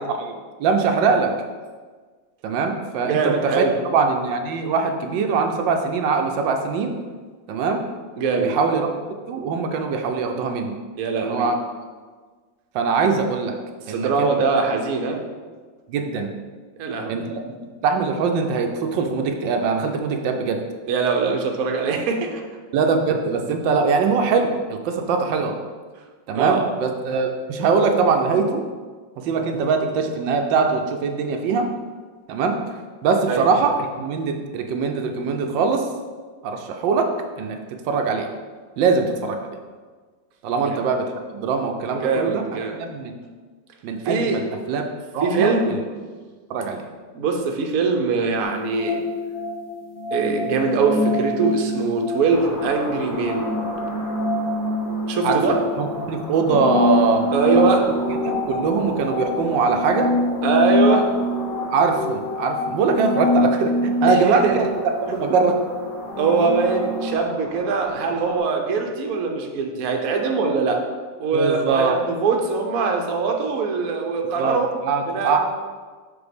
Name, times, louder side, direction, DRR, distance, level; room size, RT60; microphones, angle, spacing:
voice 1, 0.0-1.3 2.4-3.6 3.9-6.9 7.5-7.8 8.4-9.0 9.3-10.8 11.2-11.5 12.7-13.5 13.9-14.3 15.9-16.3 17.1-20.6 22.7-25.5 26.3-28.6 29.2-31.7 32.3-32.6 33.0-35.9 36.4-37.1 37.4-37.6 37.9-38.3 38.8-39.4 40.4-42.4 42.8-43.1 43.8-44.8 45.1-45.8 46.5-46.8 55.2-55.4 55.8-57.3 57.5-57.6 58.2-60.1 61.7-64.7 65.2-65.6 71.3-72.0 74.4-74.6 74.8-75.4, right 5 dB, 80° right, 4 dB, 1.3 m, -22 dB
voice 2, 3.0-3.7 8.2-8.6 11.0-11.5 13.9-15.2 16.8-17.3 20.9-22.4 26.3-26.6 33.3-33.4 40.6-40.8 41.9-42.8 44.0-44.4 45.2-45.8 47.1-49.0 50.1-53.5 55.1-55.6 57.3-57.9 60.4-61.1 64.1-64.6 66.2-70.8 71.2-74.7 75.1-75.4, right 4 dB, 60° right, 2 dB, 1.1 m, -22 dB
sound 1, 48.4-67.1, left 2 dB, 70° left, 1.8 m, -25 dB
sound 2, 52.3-68.4, left 1 dB, 10° left, 1.2 m, -36 dB
7.0 x 4.1 x 5.1 m, 1.5 s
omnidirectional pair, 2.0 m